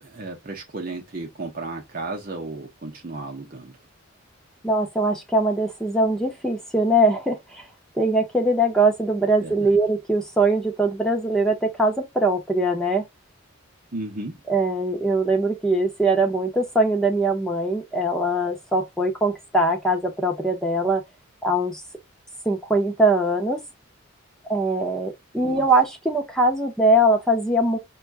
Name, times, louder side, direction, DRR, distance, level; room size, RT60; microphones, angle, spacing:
voice 1, 0.0-3.8 9.4-9.7 13.9-14.4 25.4-25.7, right 2 dB, 45° right, 0.8 m, -34 dB
voice 2, 4.6-7.6 8.0-13.0 14.5-21.0 21.4-21.8 22.5-23.6 24.5-27.8, right 1 dB, 5° left, 0.7 m, -21 dB
5.9 x 2.3 x 2.5 m
head